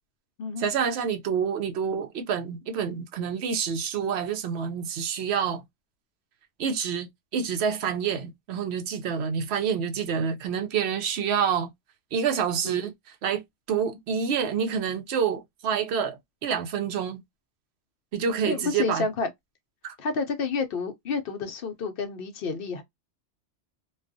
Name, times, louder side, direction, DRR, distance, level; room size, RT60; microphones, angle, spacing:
voice 1, 0.6-5.7 6.6-11.7 12.1-12.9 13.2-13.4 13.7-17.2 18.1-19.1 19.8-19.9, right 7 dB, 70° right, 0.8 m, -27 dB
voice 2, 18.4-19.3 20.0-22.8, left 4 dB, 60° left, 0.7 m, -30 dB
2.3 x 2.3 x 2.5 m
omnidirectional pair, 1.2 m